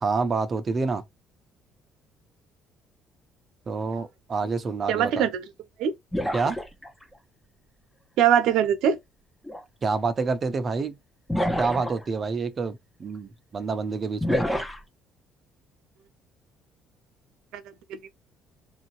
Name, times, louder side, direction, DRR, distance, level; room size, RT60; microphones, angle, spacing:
voice 1, 0.0-1.0 3.7-5.3 6.3-6.6 9.8-11.0 11.6-14.4, right 4 dB, 35° right, 0.8 m, -27 dB
voice 2, 4.9-5.4 5.8-5.9 8.2-9.0 17.9-18.1, right 9 dB, 75° right, 0.9 m, -22 dB
sound 1, 6.1-7.0 9.4-9.6 11.3-12.0 14.2-14.8, left 1 dB, 5° left, 0.9 m, -27 dB
3.5 x 2.8 x 4.6 m
cardioid pair, 105°, 0 cm